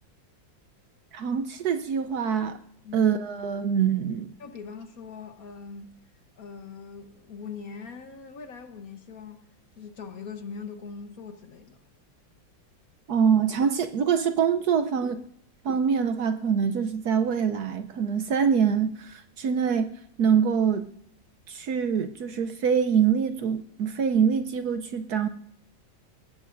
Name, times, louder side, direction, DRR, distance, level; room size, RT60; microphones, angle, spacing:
voice 1, 1.1-2.6 2.9-4.3 13.1-15.2 15.6-19.9 20.2-20.9 21.5-25.3, right 7 dB, 65° right, 1.1 m, -24 dB
voice 2, 4.4-6.0 6.4-9.5 9.8-11.8, left 5 dB, 55° left, 1.3 m, -41 dB
22.0 x 19.0 x 2.6 m
omnidirectional pair, 2.1 m